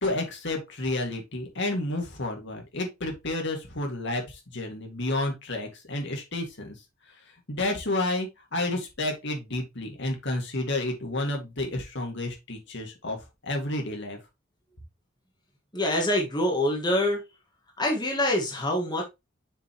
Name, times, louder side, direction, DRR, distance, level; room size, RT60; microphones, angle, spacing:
voice 1, 0.0-6.7 7.5-14.2, left 2 dB, 60° left, 2.3 m, -30 dB
voice 2, 15.7-17.2 17.8-19.0, left 1 dB, 20° left, 1.7 m, -25 dB
6.8 x 5.4 x 3.1 m
head